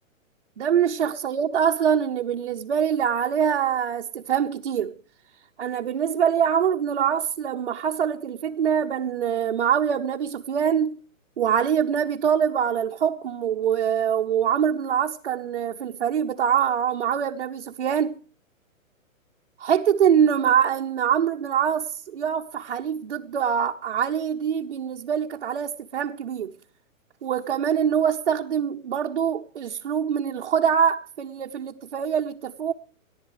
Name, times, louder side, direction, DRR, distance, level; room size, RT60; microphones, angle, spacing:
voice 1, 0.6-4.9 5.6-11.0 11.4-18.2 19.6-26.5 27.2-32.7, right 8 dB, 45° right, 0.8 m, -24 dB
29.5 x 11.0 x 3.1 m
hypercardioid pair, 170°, 42 cm